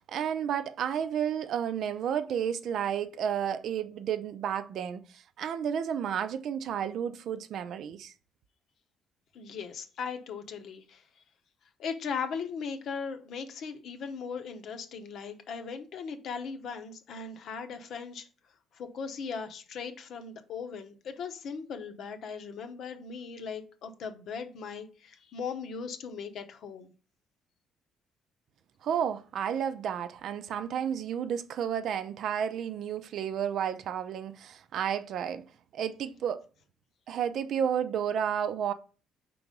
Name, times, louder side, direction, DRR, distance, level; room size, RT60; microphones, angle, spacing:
voice 1, 0.0-8.1 28.8-35.4 35.7-36.4 37.1-38.7, right 8 dB, 65° right, 0.5 m, -31 dB
voice 2, 9.3-11.2 11.8-18.3 18.7-26.9, left 6 dB, 60° left, 0.9 m, -38 dB
4.7 x 3.8 x 5.2 m
cardioid pair, 115°, 0 cm